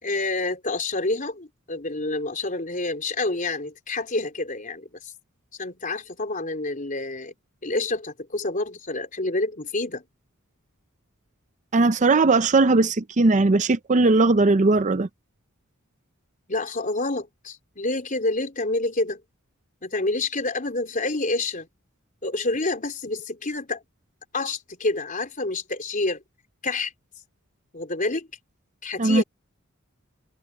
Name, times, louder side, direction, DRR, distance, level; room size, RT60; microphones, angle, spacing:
voice 1, 0.0-5.1 5.6-7.3 7.6-10.0 16.5-19.2 19.8-21.7 22.2-23.8 24.3-26.2 26.6-26.9 27.7-28.3 28.8-29.2, left 2 dB, 40° left, 4.0 m, -28 dB
voice 2, 11.7-15.1 29.0-29.2, right 3 dB, 35° right, 0.6 m, -19 dB
head